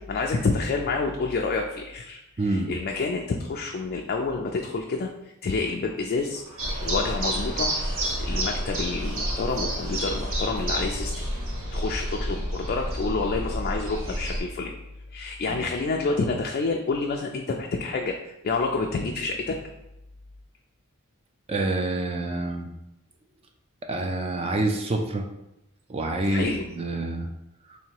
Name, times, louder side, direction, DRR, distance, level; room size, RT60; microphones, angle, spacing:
voice 1, 0.0-6.4 6.8-7.7 8.2-11.3 11.7-14.7 15.1-19.6 26.3-26.7, left 3 dB, 45° left, 1 dB, 0.3 m, -28 dB
voice 2, 2.4-2.7 15.5-15.6 21.5-22.7 23.8-25.2 25.9-27.3, right 2 dB, 30° right, 4 dB, 0.4 m, -27 dB
sound 1, 6.2-11.6, right 1 dB, 85° right, 1.0 m, -49 dB
sound 2, 6.6-14.4, right 1 dB, 65° right, 0.9 m, -29 dB
3.2 x 2.9 x 4.5 m, 0.89 s
head